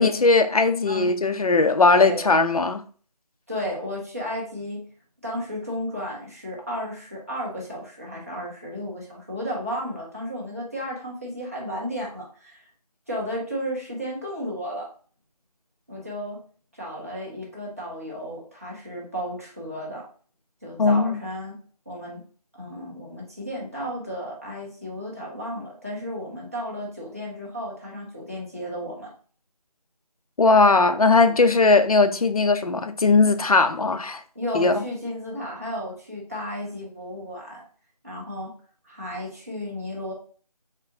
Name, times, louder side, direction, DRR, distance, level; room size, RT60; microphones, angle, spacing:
voice 1, 0.0-2.8 20.8-21.2 30.4-34.2 34.5-34.8, left 3 dB, 60° left, 0.4 m, -19 dB
voice 2, 2.0-2.4 3.5-4.8 5.2-12.6 13.1-14.9 15.9-16.4 16.8-20.0 20.6-21.6 21.9-22.2 22.5-29.1 31.1-31.4 34.3-37.6 38.0-38.5 38.8-40.1, equal, 20° right, 0.7 m, -33 dB
3.5 x 2.4 x 2.6 m
figure-of-eight pair, 165°, 21 cm